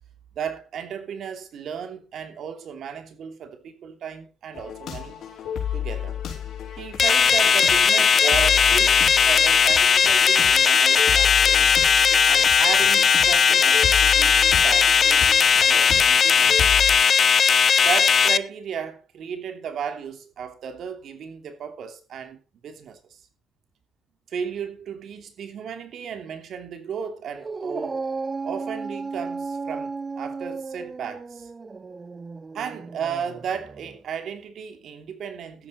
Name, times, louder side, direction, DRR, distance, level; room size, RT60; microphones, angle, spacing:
voice 1, 0.3-5.2 5.7-6.2 6.8-11.7 12.3-16.7 17.8-22.4 22.6-23.3 24.3-28.0 28.4-31.5 32.5-35.7, right 7 dB, 65° right, 2.9 m, -34 dB
sound 1, 4.5-17.0, left 9 dB, 75° left, 4.8 m, -32 dB
sound 2, 7.0-18.4, left 6 dB, 50° left, 0.9 m, -18 dB
Dog, 27.3-34.0, right 4 dB, 30° right, 0.8 m, -34 dB
13.0 x 10.5 x 4.2 m
cardioid pair, 90°, 0 cm